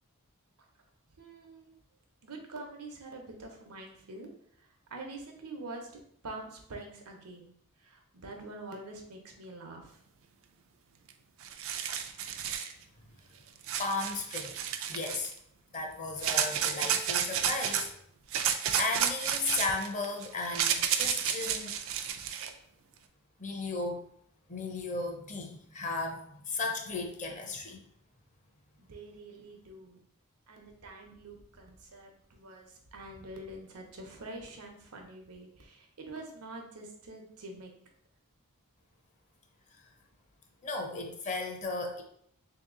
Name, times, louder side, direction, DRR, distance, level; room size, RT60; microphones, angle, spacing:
voice 1, 1.2-1.7 2.2-4.3 4.9-5.9 6.2-7.5 7.8-10.0 28.8-30.0 30.5-37.7, right 2 dB, 85° right, 3 dB, 0.8 m, -45 dB
sound 1, 11.1-11.2 11.4-12.7 13.6-15.3 16.2-17.9 18.3-22.5, right 9 dB, 65° right, 0.4 m, -31 dB
voice 2, 13.8-14.6 14.9-15.3 15.7-17.9 18.3-21.7 23.4-24.0 24.5-27.8 40.6-42.0, left 3 dB, 35° left, 3 dB, 0.6 m, -35 dB
3.2 x 2.9 x 3.7 m, 0.66 s
head